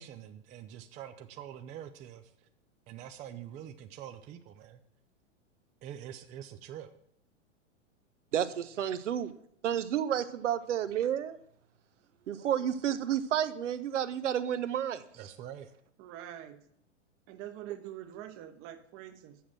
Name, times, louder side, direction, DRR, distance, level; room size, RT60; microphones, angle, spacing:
voice 1, 0.0-2.3 2.9-4.8 5.8-6.9 15.2-15.7, right 10 dB, 20° right, 8 dB, 0.4 m, -45 dB
voice 2, 8.3-9.3 9.6-11.4 12.3-15.0, right 10 dB, 75° right, 12 dB, 0.7 m, -31 dB
voice 3, 16.0-16.6 17.3-19.4, right 12 dB, 35° right, 10 dB, 1.0 m, -45 dB
7.1 x 6.1 x 7.3 m, 0.68 s
hypercardioid pair, 105°, 37 cm